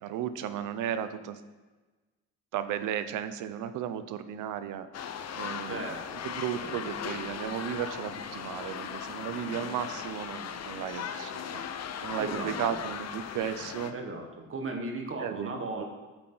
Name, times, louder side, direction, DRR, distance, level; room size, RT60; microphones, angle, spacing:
voice 1, 0.0-1.4 2.5-4.9 5.3-5.8 6.2-11.6 12.0-13.9 15.2-15.8, right 9 dB, 90° right, 11 dB, 0.7 m, -34 dB
sound 1, 4.9-13.9, left 8 dB, 60° left, 0.7 m, -38 dB
voice 2, 5.7-6.2 6.5-6.7 12.2-12.8 13.9-15.8, right 2 dB, 45° right, 3 dB, 1.5 m, -37 dB
9.0 x 7.6 x 3.9 m, 1.2 s
cardioid pair, 90°, 30 cm